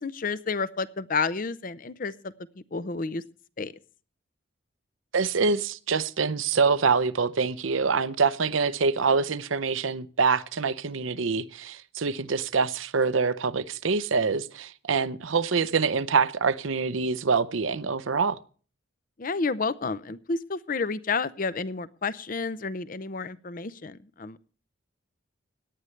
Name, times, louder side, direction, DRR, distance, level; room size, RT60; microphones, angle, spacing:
voice 1, 0.0-2.3 2.7-3.2 3.6-3.7 19.2-24.4, left 4 dB, 40° left, 0.6 m, -30 dB
voice 2, 5.1-18.4, right 5 dB, 75° right, 0.7 m, -25 dB
17.5 x 11.0 x 3.2 m
head